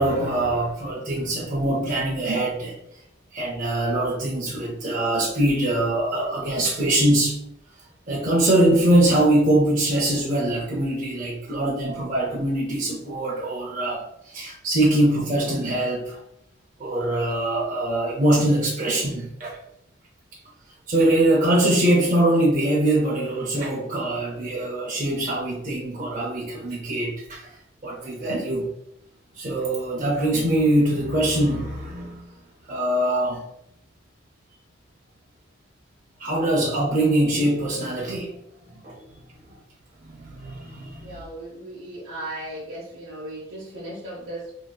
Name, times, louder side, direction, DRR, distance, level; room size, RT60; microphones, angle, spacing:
voice 1, 0.0-2.7 3.3-7.4 8.1-16.2 16.8-19.6 20.9-27.5 27.8-28.7 29.4-32.2 32.7-33.4 36.2-38.4 38.7-39.0 40.0-41.2, right 1 dB, 40° right, -4 dB, 0.5 m, -23 dB
voice 2, 41.0-44.5, right 1 dB, 80° right, -5 dB, 0.7 m, -36 dB
3.7 x 2.7 x 2.2 m, 0.77 s
head